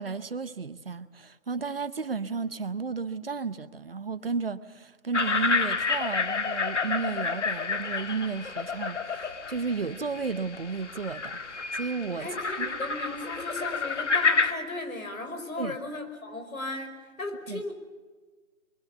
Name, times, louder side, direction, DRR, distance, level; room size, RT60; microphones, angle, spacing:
voice 1, 0.0-12.3 12.6-12.7 15.6-15.7 17.5-17.6, right 5 dB, 45° right, 0.8 m, -33 dB
sound 1, 5.1-14.5, left 5 dB, 55° left, 1.8 m, -29 dB
voice 2, 12.2-17.7, left 2 dB, 75° left, 5.4 m, -36 dB
23.5 x 23.0 x 7.1 m
figure-of-eight pair, 165°, 42 cm